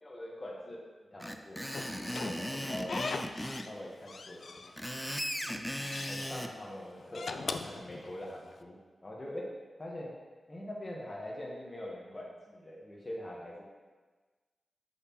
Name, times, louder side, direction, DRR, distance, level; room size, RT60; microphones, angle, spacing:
voice 1, 0.0-0.8 1.1-3.0 3.6-4.7 5.4-9.5 9.8-10.1 10.5-13.6, left 1 dB, 30° left, -3 dB, 1.4 m, -44 dB
Screech, 1.2-3.7 4.6-6.5, equal, 5° left, 0.5 m, -37 dB
Slam / Squeak, 1.7-3.8 4.1-5.0 5.4-6.3 7.0-8.5, left 4 dB, 60° left, 0.4 m, -40 dB
7.9 x 5.7 x 3.1 m, 1.4 s
cardioid pair, 75°, 0 cm